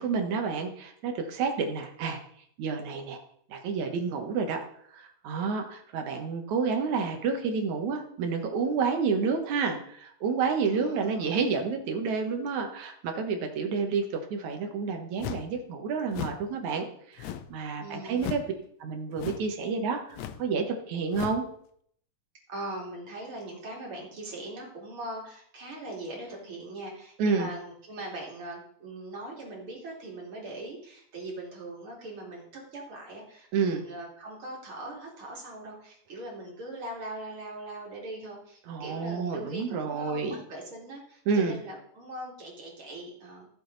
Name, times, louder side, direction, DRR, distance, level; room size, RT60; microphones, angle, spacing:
voice 1, 0.0-2.2 2.6-3.2 3.5-4.6 4.9-18.4 18.8-21.4 27.2-27.5 33.5-33.8 38.7-40.4 41.3-41.6, right 5 dB, 65° right, 4 dB, 2.5 m, -29 dB
voice 2, 10.7-11.4 17.8-18.6 22.5-43.5, right 1 dB, 40° right, -3 dB, 3.5 m, -41 dB
sound 1, 15.2-15.6 16.1-16.5 17.2-17.6 18.2-18.5 19.2-19.5 20.1-20.5 21.1-21.5, left 10 dB, 85° left, 1.5 m, -37 dB
15.5 x 7.6 x 4.0 m, 0.66 s
omnidirectional pair, 3.9 m